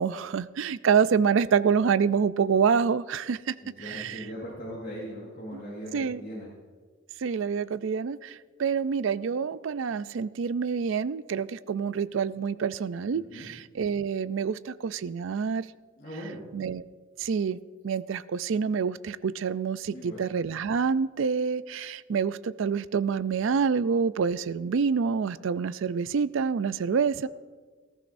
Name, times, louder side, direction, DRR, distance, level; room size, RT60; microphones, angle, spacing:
voice 1, 0.0-3.5 3.9-4.2 5.9-6.2 7.2-15.7 16.5-16.8 17.2-27.3, right 6 dB, 65° right, 16 dB, 0.4 m, -27 dB
voice 2, 3.6-6.5 13.1-13.5 16.0-16.5 19.9-20.2, equal, 40° left, -8 dB, 4.3 m, -39 dB
19.5 x 14.5 x 2.6 m, 1.5 s
head